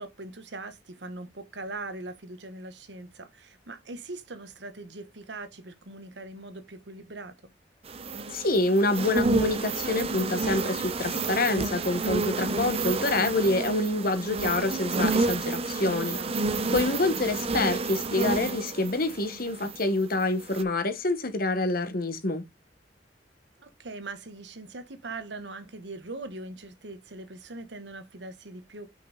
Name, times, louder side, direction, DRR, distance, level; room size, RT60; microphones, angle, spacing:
voice 1, 0.0-7.5 16.0-16.6 23.6-28.9, right 2 dB, 90° right, 1.3 m, -41 dB
sound 1, 7.9-20.0 20.4-20.6, right 3 dB, 35° right, 0.7 m, -30 dB
voice 2, 8.3-16.2 16.7-22.4, left 2 dB, 55° left, 1.4 m, -27 dB
6.2 x 5.6 x 3.9 m
head